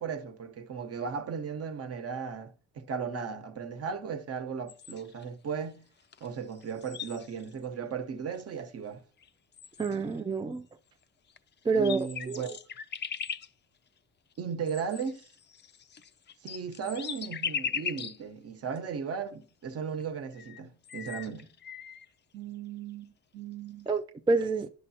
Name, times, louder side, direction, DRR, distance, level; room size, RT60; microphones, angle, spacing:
voice 1, 0.0-5.8 6.2-9.0 11.7-12.5 14.4-15.2 16.4-21.5 22.3-23.9, right 6 dB, 50° right, 1.0 m, -36 dB
sound 1, 4.7-5.2 6.1-6.3 6.5-7.6 8.3-8.4 9.2-9.3 9.5-10.2 11.3-11.4 11.7-13.5 14.7-18.2 18.8-18.9 20.0-20.1 20.3-22.0, left 7 dB, 35° left, 0.5 m, -39 dB
voice 2, 9.8-10.6 11.7-12.5 23.9-24.7, right 4 dB, 15° right, 0.4 m, -28 dB
10.5 x 6.5 x 2.8 m
cardioid pair, 90°, 31 cm